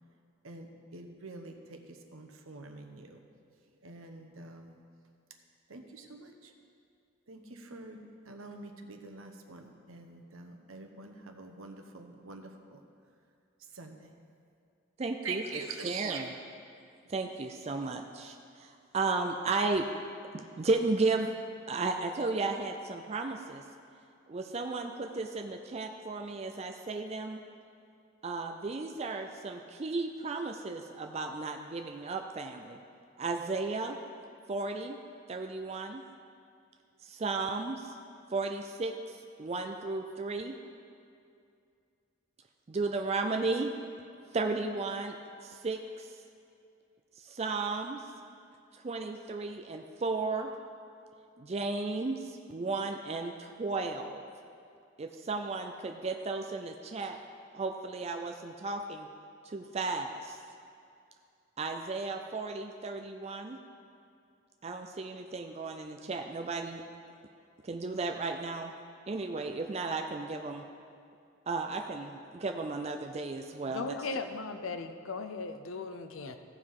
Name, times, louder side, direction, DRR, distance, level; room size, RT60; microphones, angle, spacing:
voice 1, 0.4-3.2 3.8-4.8 5.7-6.5 7.3-12.8 13.7-14.1 15.2-16.4 17.7-17.8, right 4 dB, 90° right, 4 dB, 0.9 m, -45 dB
voice 2, 15.0-15.4 15.8-16.3 17.1-19.9 20.3-21.3 21.7-23.6 24.3-27.4 28.2-32.8 33.2-34.0 34.5-35.0 35.3-36.0 37.0-38.0 38.3-40.6 42.7-43.7 44.3-45.2 45.4-46.2 47.2-48.0 48.7-50.5 51.4-54.2 55.0-57.2 57.5-59.1 59.4-60.4 61.6-63.6 64.6-66.8 67.6-68.7 69.1-70.6 71.5-74.2, right 3 dB, 30° right, 4 dB, 0.4 m, -34 dB
voice 3, 73.7-76.4, left 4 dB, 80° left, 8 dB, 0.6 m, -37 dB
15.5 x 5.6 x 4.8 m, 2.4 s
head